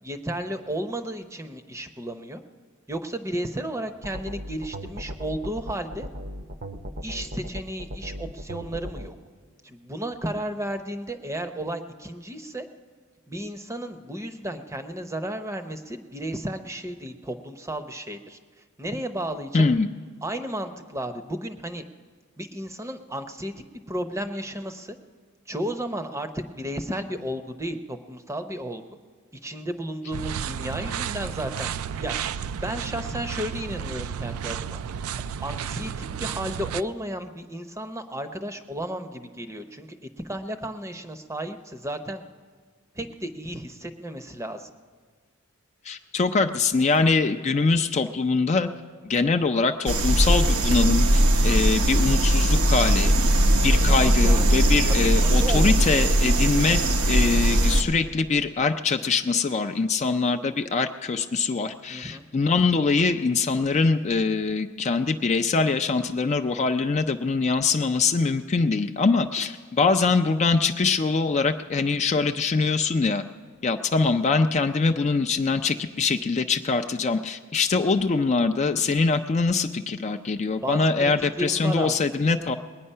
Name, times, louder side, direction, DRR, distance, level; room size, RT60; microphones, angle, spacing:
voice 1, 0.0-2.4 2.9-6.1 7.0-9.2 9.6-12.7 13.3-18.4 18.8-19.7 20.2-21.8 22.4-23.5 23.9-25.0 25.5-28.8 29.4-31.7 32.0-32.1 32.5-34.8 35.2-42.2 43.0-44.7 53.8-54.6 54.9-55.8 61.9-62.2 80.6-81.9, right 1 dB, 15° right, 8 dB, 0.7 m, -33 dB
LD Acid, 4.0-9.1, equal, 50° right, 0.8 m, -36 dB
voice 2, 19.5-19.9 45.8-48.7 49.0-53.1 53.6-56.8 57.1-73.2 73.6-82.6, left 4 dB, 30° left, 7 dB, 0.4 m, -23 dB
sound 1, 30.1-36.8, right 8 dB, 70° right, 0.3 m, -32 dB
sound 2, 49.9-57.8, right 1 dB, 90° right, 1.0 m, -20 dB
20.5 x 9.4 x 5.5 m, 1.6 s
head